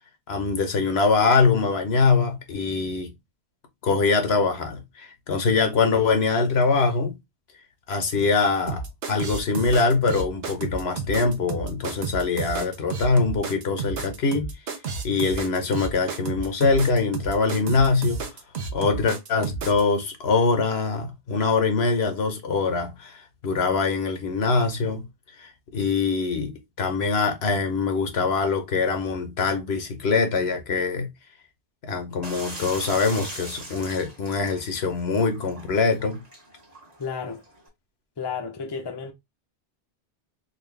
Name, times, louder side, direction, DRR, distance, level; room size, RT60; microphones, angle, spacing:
voice 1, 0.3-3.1 3.8-7.1 7.9-14.5 15.0-18.2 18.7-25.0 25.4-31.1 31.8-36.2, left 4 dB, 65° left, 1.1 m, -23 dB
sound 1, 8.7-19.8, right 4 dB, 65° right, 1.0 m, -31 dB
sound 2, 32.2-37.7, right 2 dB, 35° right, 1.3 m, -41 dB
voice 2, 37.0-37.4 38.2-39.1, left 5 dB, 25° left, 0.6 m, -32 dB
4.1 x 2.5 x 3.3 m
omnidirectional pair, 1.2 m